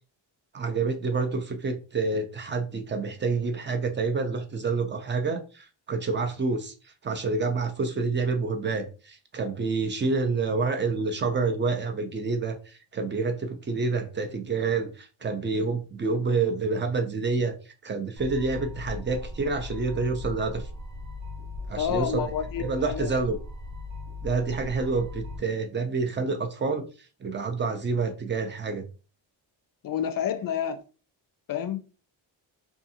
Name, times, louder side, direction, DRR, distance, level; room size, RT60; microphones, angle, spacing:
voice 1, 0.5-6.7 7.0-17.5 17.8-20.7 21.7-22.2 22.6-23.4 24.2-26.8 27.2-28.8, right 4 dB, 25° right, 0.5 m, -28 dB
sound 1, 18.2-25.4, left 2 dB, 65° right, 1.0 m, -38 dB
voice 2, 21.8-23.2 29.8-30.8 31.5-31.8, left 9 dB, 50° left, 0.4 m, -29 dB
2.5 x 2.4 x 2.8 m
cardioid pair, 95°, 47 cm